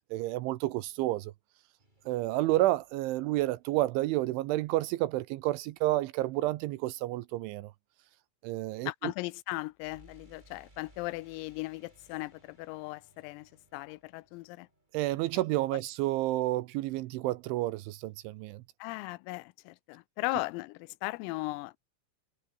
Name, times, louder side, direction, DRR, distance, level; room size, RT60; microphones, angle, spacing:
voice 1, 0.1-1.3 2.1-7.7 8.4-8.9 14.9-18.6, right 17 dB, 80° right, 3.0 m, -30 dB
sound 1, 1.8-3.8 9.9-15.7, right 1 dB, 10° right, 4.5 m, -63 dB
voice 2, 8.8-14.7 18.8-21.8, left 22 dB, 90° left, 3.4 m, -37 dB
omnidirectional pair, 6.0 m